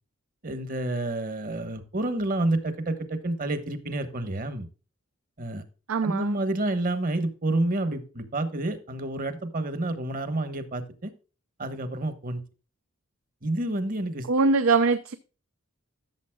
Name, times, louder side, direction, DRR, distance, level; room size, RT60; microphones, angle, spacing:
voice 1, 0.4-4.7 5.4-5.6 6.0-11.1 11.6-12.4 13.4-14.3, right 2 dB, 40° right, 1.1 m, -29 dB
voice 2, 5.9-6.4 14.3-15.2, right 4 dB, 70° right, 0.6 m, -22 dB
13.5 x 7.0 x 2.2 m
head